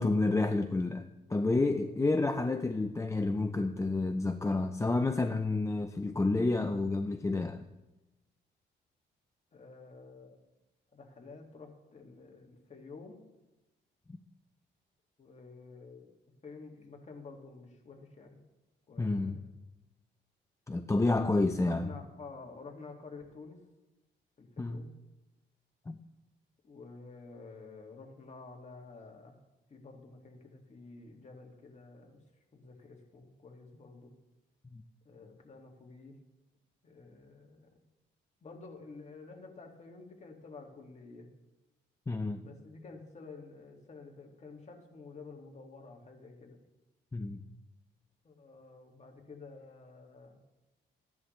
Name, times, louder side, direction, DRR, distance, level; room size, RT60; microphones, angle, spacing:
voice 1, 0.0-7.6 19.0-19.4 20.7-22.0 24.6-24.8 25.9-26.0 34.7-34.8 42.1-42.4 47.1-47.4, left 2 dB, 15° left, 0.5 m, -30 dB
voice 2, 1.3-1.7 9.5-10.4 10.9-13.2 15.2-16.1 16.4-18.4 18.9-19.5 21.3-23.6 24.4-25.0 26.6-29.4 29.7-32.2 32.5-34.1 35.1-36.2 36.8-37.8 38.4-41.3 42.4-46.6 48.2-50.4, left 4 dB, 35° left, 2.1 m, -50 dB
14.5 x 10.5 x 3.2 m
cardioid pair, 90°, 20 cm